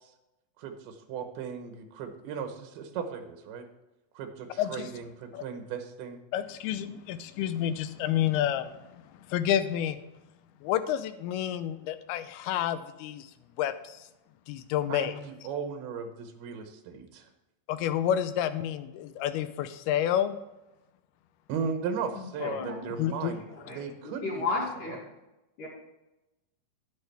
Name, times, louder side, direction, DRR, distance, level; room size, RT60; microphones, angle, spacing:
voice 1, 0.6-3.7 4.1-6.2 14.9-17.3 21.5-24.5, right 6 dB, 90° right, 6 dB, 3.0 m, -36 dB
voice 2, 4.6-4.9 5.3-5.4 6.3-10.0 10.6-13.3 13.6-14.1 14.5-15.1 17.7-20.4 22.4-22.7 23.0-23.3, left 10 dB, 85° left, 11 dB, 2.6 m, -29 dB
voice 3, 22.4-22.9 23.6-23.8 24.0-25.0 25.6-25.7, left 3 dB, 60° left, -7 dB, 3.6 m, -33 dB
11.0 x 10.5 x 3.4 m, 0.97 s
omnidirectional pair, 4.4 m